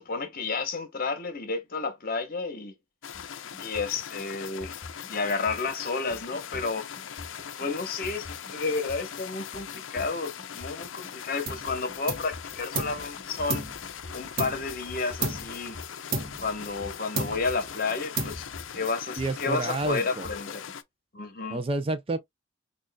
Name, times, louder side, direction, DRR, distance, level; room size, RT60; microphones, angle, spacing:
voice 1, 0.0-2.7 3.6-4.7 5.1-6.9 7.6-13.6 14.1-15.8 16.4-18.5 18.7-20.7 21.1-21.6, left 4 dB, 50° left, 1.0 m, -31 dB
sound 1, 3.0-20.8, left 8 dB, 80° left, 0.5 m, -41 dB
sound 2, 3.1-20.7, left 1 dB, 15° left, 1.2 m, -46 dB
sound 3, 11.5-11.7 12.1-13.1 13.5-14.8 15.2-15.6 16.1-16.9 17.2-17.7 18.2-18.7, right 2 dB, 50° right, 1.1 m, -33 dB
voice 2, 19.2-20.3 21.5-22.2, right 2 dB, 30° right, 0.4 m, -29 dB
6.2 x 2.4 x 2.2 m
head